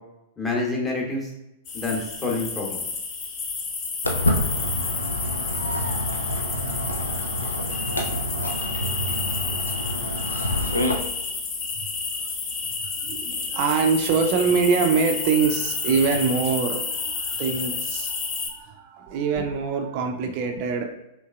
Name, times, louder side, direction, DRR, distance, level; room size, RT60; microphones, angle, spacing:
voice 1, 0.4-1.3 1.7-2.9, left 3 dB, 15° left, -1 dB, 1.0 m, -27 dB
sound 1, 1.6-18.5, left 4 dB, 35° left, 0.7 m, -30 dB
Walk footsteps, 4.0-11.0, left 1 dB, 80° left, 0.5 m, -27 dB
voice 2, 12.8-20.9, right 5 dB, 45° right, 4 dB, 0.5 m, -24 dB
5.3 x 3.2 x 2.3 m, 0.88 s
figure-of-eight pair, 100°, 0 cm